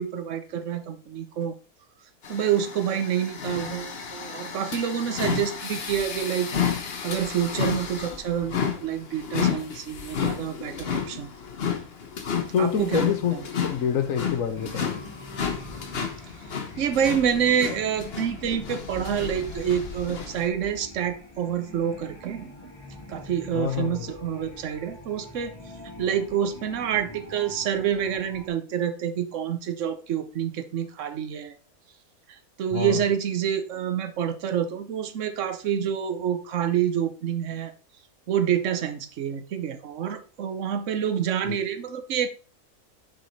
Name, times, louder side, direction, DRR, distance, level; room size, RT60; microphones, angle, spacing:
voice 1, 0.0-1.5 2.3-6.5 7.0-11.3 12.6-13.4 16.8-22.7 23.1-25.5 26.0-31.5 32.3-37.7 38.3-42.3, right 9 dB, 60° right, 1.1 m, -27 dB
sound 1, 2.2-20.5, left 7 dB, 45° left, 1.1 m, -32 dB
voice 2, 12.5-13.4 13.6-15.0 23.5-24.1 32.7-33.0 41.5-41.6, left 8 dB, 65° left, 1.2 m, -26 dB
sound 2, 14.5-28.5, left 2 dB, 20° left, 1.3 m, -44 dB
7.1 x 4.8 x 4.0 m
omnidirectional pair, 1.6 m